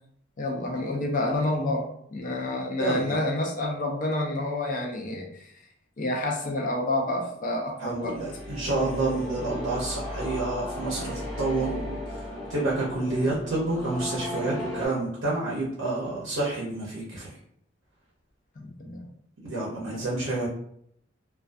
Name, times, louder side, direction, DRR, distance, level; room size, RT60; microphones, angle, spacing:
voice 1, 0.4-5.5 6.0-8.2 18.6-19.1 19.9-20.0, left 1 dB, 40° left, 0 dB, 0.4 m, -29 dB
voice 2, 2.8-3.2 7.8-12.2 12.5-17.3 19.4-20.5, right 2 dB, 90° right, -5 dB, 0.6 m, -29 dB
sound 1, 7.9-14.9, left 1 dB, 20° left, 0.7 m, -36 dB
2.3 x 2.3 x 2.5 m, 0.69 s
head